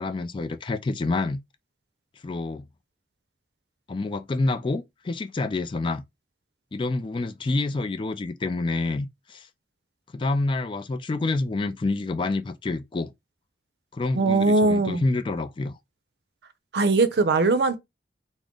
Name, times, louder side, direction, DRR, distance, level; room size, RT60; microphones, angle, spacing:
voice 1, 0.0-1.4 2.2-2.7 3.9-6.0 6.7-9.5 10.1-13.1 13.9-15.8, left 2 dB, 30° left, 0.3 m, -28 dB
voice 2, 14.2-15.0 16.7-17.8, right 3 dB, 65° right, 0.5 m, -20 dB
3.6 x 2.0 x 3.7 m
head